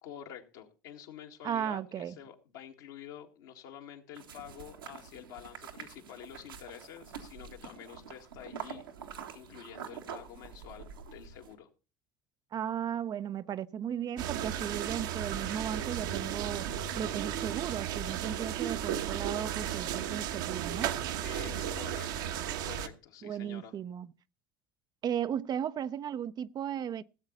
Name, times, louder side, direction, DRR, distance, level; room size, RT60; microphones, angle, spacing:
voice 1, 0.0-8.9 9.3-11.7 21.2-22.3 22.6-23.7, left 10 dB, 65° left, 1.9 m, -48 dB
voice 2, 1.4-2.2 12.5-16.7 17.0-20.9 23.2-24.1 25.0-27.0, right 9 dB, 35° right, 0.6 m, -35 dB
sound 1, 4.1-11.5, right 7 dB, 80° right, 1.7 m, -46 dB
sound 2, 14.2-22.9, right 10 dB, 65° right, 1.2 m, -34 dB
17.0 x 7.9 x 4.0 m
hypercardioid pair, 70°, 11 cm